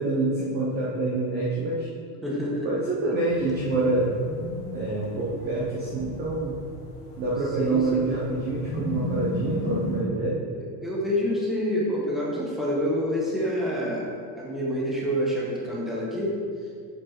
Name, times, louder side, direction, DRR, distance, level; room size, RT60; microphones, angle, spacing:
voice 1, 0.0-1.9 2.6-4.2 4.7-6.6 7.2-10.4, right 2 dB, 20° right, -5 dB, 0.6 m, -26 dB
voice 2, 2.2-2.7 7.6-8.0 10.8-14.0 14.4-16.3, equal, ahead, -6 dB, 1.0 m, -27 dB
sound 1, 3.3-10.0, left 1 dB, 20° left, 1.2 m, -35 dB
7.9 x 4.5 x 4.4 m, 2.2 s
supercardioid pair, 165°, 49 cm